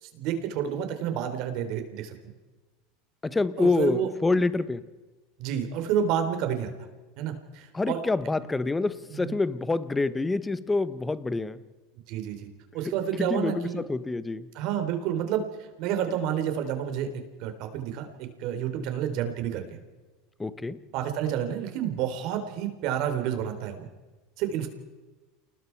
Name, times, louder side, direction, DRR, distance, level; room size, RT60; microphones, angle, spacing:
voice 1, 0.0-2.1 3.6-4.1 5.4-6.7 7.2-8.0 9.1-9.3 12.1-12.5 12.7-13.8 14.5-17.1 17.4-19.8 20.9-23.9 24.4-24.7, right 9 dB, 60° right, 7 dB, 3.7 m, -29 dB
voice 2, 3.2-4.8 7.7-11.6 13.2-14.5 20.4-20.8, left 3 dB, 10° left, 15 dB, 1.1 m, -27 dB
29.0 x 19.5 x 4.7 m, 1.2 s
supercardioid pair, 120°, 0 cm